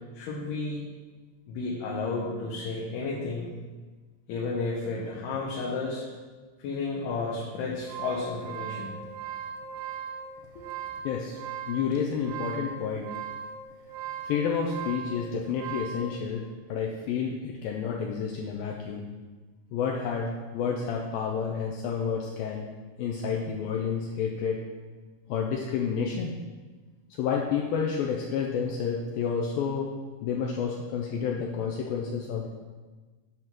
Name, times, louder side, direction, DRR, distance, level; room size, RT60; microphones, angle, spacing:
voice 1, 0.1-0.8 1.5-3.5 4.3-6.0 6.6-8.9 10.6-10.7, left 3 dB, 75° left, -4 dB, 2.9 m, -32 dB
sound 1, 7.6-16.1, right 7 dB, 70° right, 2.3 m, -38 dB
voice 2, 11.0-11.4 11.7-13.1 14.2-19.1 19.7-22.7 23.0-24.6 25.3-26.3 27.2-29.9 30.2-32.5, left 6 dB, 90° left, 0 dB, 2.1 m, -30 dB
10.5 x 3.8 x 6.0 m, 1.3 s
omnidirectional pair, 4.9 m